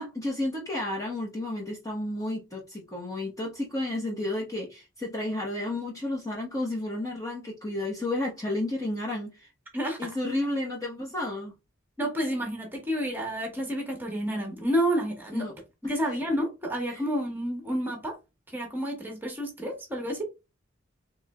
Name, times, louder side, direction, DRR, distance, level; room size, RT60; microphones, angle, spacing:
voice 1, 0.0-9.5 10.0-11.5 15.3-15.5 15.8-16.0 16.9-17.0, left 1 dB, 15° left, 1.0 m, -32 dB
voice 2, 9.7-10.1 11.0-11.1 12.0-15.5 15.9-18.2 18.5-20.2, equal, 10° right, 1.2 m, -30 dB
4.3 x 3.1 x 2.2 m
head